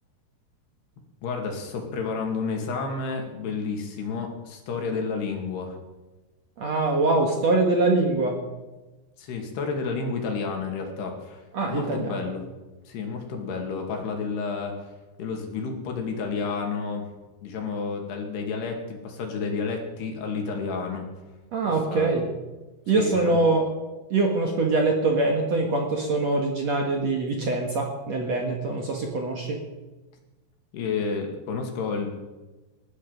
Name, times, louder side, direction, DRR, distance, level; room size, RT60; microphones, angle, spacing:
voice 1, 1.2-5.8 9.2-12.5 12.9-14.9 15.2-17.1 17.4-21.1 21.9-22.1 23.0-23.3 30.7-32.2, left 4 dB, 65° left, 3 dB, 4.3 m, -30 dB
voice 2, 6.6-8.4 11.5-12.2 21.5-22.3 22.9-23.6 24.1-29.6, right 3 dB, 55° right, 1 dB, 2.1 m, -23 dB
20.0 x 13.0 x 5.2 m, 1.1 s
omnidirectional pair, 5.1 m